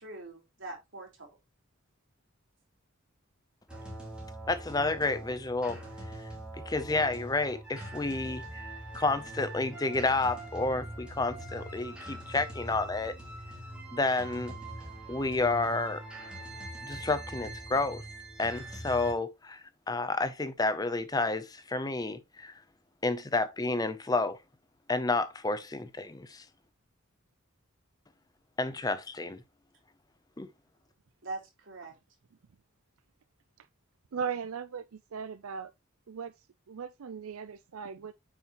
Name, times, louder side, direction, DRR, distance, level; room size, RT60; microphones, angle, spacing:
voice 1, 0.0-1.4 31.2-31.9, right 2 dB, 60° right, 3.5 m, -42 dB
sound 1, 3.7-19.1, right 1 dB, 5° right, 3.1 m, -43 dB
voice 2, 4.5-5.8 6.7-8.7 8.9-13.2 13.9-14.5 15.1-16.0 16.8-18.0 18.4-22.5 23.0-24.4 24.9-26.4 28.6-29.4 30.4-30.5, left 3 dB, 20° left, 0.6 m, -30 dB
voice 3, 34.1-35.7 36.1-38.1, right 6 dB, 85° right, 0.5 m, -38 dB
9.2 x 5.6 x 3.0 m
head